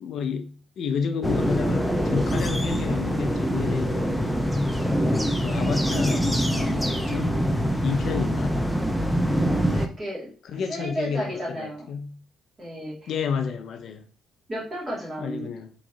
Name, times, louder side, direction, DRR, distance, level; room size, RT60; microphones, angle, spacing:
voice 1, 0.0-4.2 5.4-7.4 7.8-8.6 10.4-12.2 13.1-14.1 15.2-15.7, left 6 dB, 60° left, 0.5 m, -30 dB
sound 1, 1.2-9.9, equal, ahead, 0.4 m, -24 dB
voice 2, 9.7-10.3 10.7-11.9 12.6-13.1 14.5-15.5, right 1 dB, 25° right, 2.0 m, -33 dB
3.5 x 3.1 x 3.8 m
cardioid pair, 130°, 0 cm